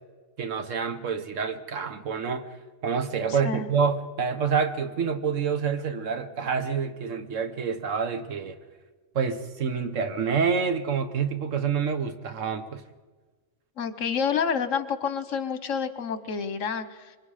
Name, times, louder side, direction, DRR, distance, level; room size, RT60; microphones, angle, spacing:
voice 1, 0.4-2.5 2.8-8.6 9.1-12.8, right 6 dB, 75° right, 8 dB, 1.5 m, -27 dB
voice 2, 3.3-3.7 13.8-17.2, left 6 dB, 75° left, 11 dB, 1.4 m, -29 dB
25.5 x 22.5 x 5.0 m, 1.4 s
omnidirectional pair, 1.3 m